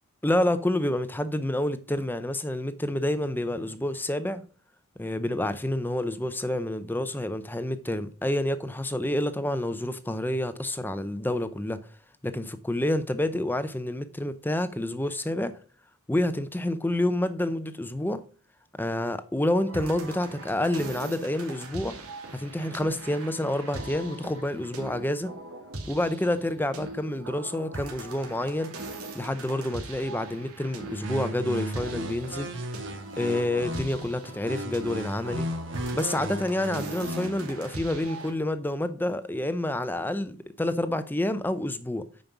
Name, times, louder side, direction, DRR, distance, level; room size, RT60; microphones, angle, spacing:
voice 1, 0.2-4.4 5.0-11.8 12.2-15.5 16.1-18.2 18.8-21.9 22.3-25.3 25.9-28.7 29.1-32.5 33.2-35.5 35.9-42.0, left 1 dB, 10° left, 0.6 m, -28 dB
sound 1, 19.7-38.3, right 2 dB, 85° right, 2.6 m, -41 dB
sound 2, 31.0-34.0 34.5-37.5, right 1 dB, 55° right, 1.4 m, -35 dB
9.0 x 5.3 x 5.9 m
head